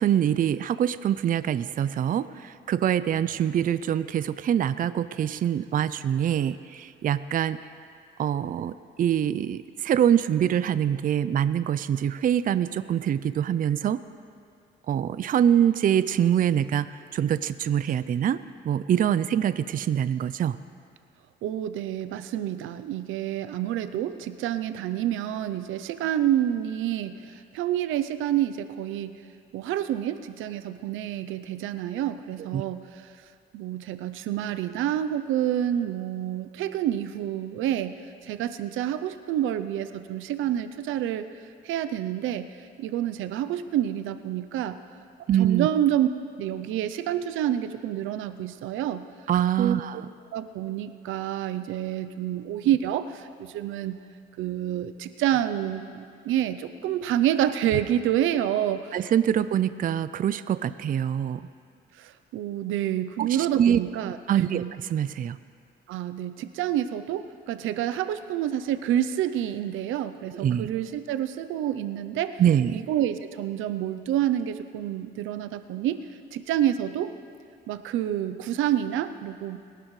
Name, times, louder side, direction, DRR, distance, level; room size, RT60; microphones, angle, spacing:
voice 1, 0.0-7.6 8.2-14.0 14.9-18.4 18.6-20.6 32.5-32.6 45.3-45.7 49.3-50.1 58.9-61.4 63.2-63.3 63.5-63.8 64.3-64.6 64.9-65.4 70.4-70.7 72.4-72.8, right 9 dB, 45° right, 14 dB, 0.4 m, -24 dB
voice 2, 21.4-29.2 29.5-33.1 33.5-38.0 38.2-41.2 41.6-42.5 42.8-44.8 45.4-46.1 46.4-49.0 49.6-49.7 50.3-54.0 54.4-59.0 62.0-64.7 65.9-72.4 72.7-76.1 76.3-77.1 77.7-79.6, right 11 dB, 90° right, 11 dB, 0.6 m, -28 dB
21.5 x 11.5 x 3.2 m, 2.3 s
cardioid pair, 90°, 20 cm